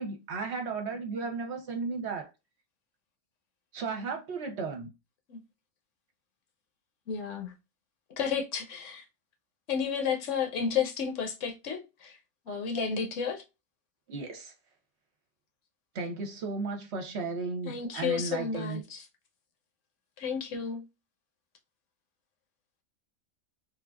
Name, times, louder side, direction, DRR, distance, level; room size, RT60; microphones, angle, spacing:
voice 1, 0.0-2.3 3.7-4.9 12.5-12.9 14.1-14.5 15.9-18.8, right 4 dB, 60° right, 0.9 m, -35 dB
voice 2, 7.1-7.5 8.2-9.0 9.7-12.2 12.5-13.4 17.6-19.1 20.2-20.8, left 6 dB, 70° left, 1.0 m, -32 dB
3.3 x 2.4 x 2.3 m
omnidirectional pair, 1.4 m